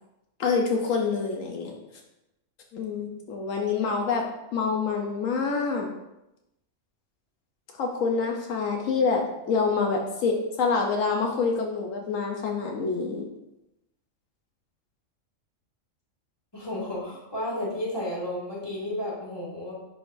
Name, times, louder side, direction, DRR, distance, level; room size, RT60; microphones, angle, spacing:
voice 1, 0.4-1.8 2.7-4.2 4.5-5.9 7.8-13.2, left 4 dB, 80° left, 1 dB, 1.1 m, -26 dB
voice 2, 16.5-19.7, left 1 dB, 20° left, -6 dB, 1.9 m, -32 dB
10.5 x 3.7 x 2.6 m, 0.90 s
omnidirectional pair, 1.3 m